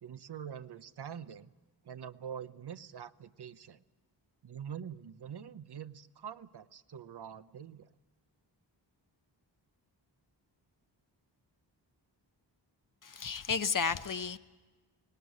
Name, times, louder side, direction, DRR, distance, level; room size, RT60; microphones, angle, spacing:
voice 1, 0.0-1.5 1.8-3.8 4.4-7.9, right 8 dB, 60° right, 13 dB, 0.8 m, -45 dB
voice 2, 13.0-14.4, left 5 dB, 45° left, 11 dB, 0.9 m, -32 dB
19.0 x 18.5 x 9.5 m, 1.2 s
wide cardioid pair, 145°, 44 cm